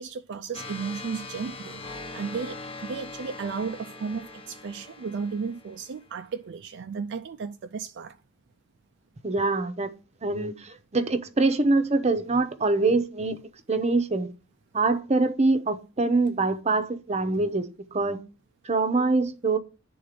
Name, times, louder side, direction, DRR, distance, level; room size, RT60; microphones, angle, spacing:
voice 1, 0.0-8.2, right 5 dB, 60° right, 0.4 m, -34 dB
sound 1, 0.5-6.1, left 3 dB, 30° left, 1.0 m, -41 dB
voice 2, 9.2-9.9 10.2-13.4 13.7-14.3 14.7-18.2 18.6-19.6, right 3 dB, 30° right, 0.8 m, -24 dB
10.5 x 3.9 x 5.0 m
head